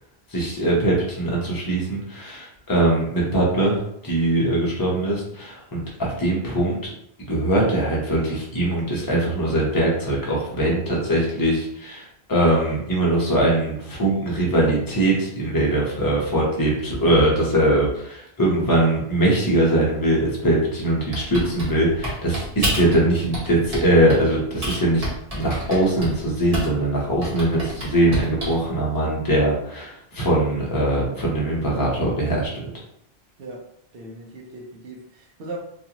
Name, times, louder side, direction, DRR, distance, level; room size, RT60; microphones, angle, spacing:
voice 1, 0.3-6.9 7.3-25.0 25.3-32.5, right 1 dB, 25° left, -4 dB, 0.7 m, -21 dB
Typing, 21.1-23.0 23.3-24.3 24.6-26.9 27.2-28.6, right 1 dB, 40° right, 1.1 m, -29 dB
voice 2, 33.9-35.6, right 2 dB, 65° right, 0 dB, 0.8 m, -38 dB
2.4 x 2.4 x 2.8 m, 0.73 s
omnidirectional pair, 1.0 m